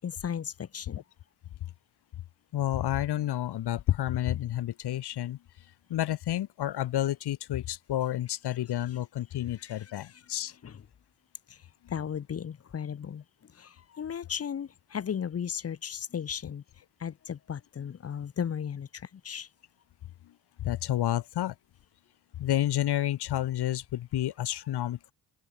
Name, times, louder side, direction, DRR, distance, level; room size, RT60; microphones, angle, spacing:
voice 1, 0.0-1.0 9.6-10.2 10.5-10.8 11.5-11.6 11.9-13.2 13.5-16.6 17.0-19.5, left 8 dB, 35° left, 0.8 m, -36 dB
voice 2, 2.5-5.4 5.9-10.5 20.6-21.5 22.4-25.1, left 13 dB, 60° left, 1.1 m, -30 dB
open air
hypercardioid pair, 50°, 45 cm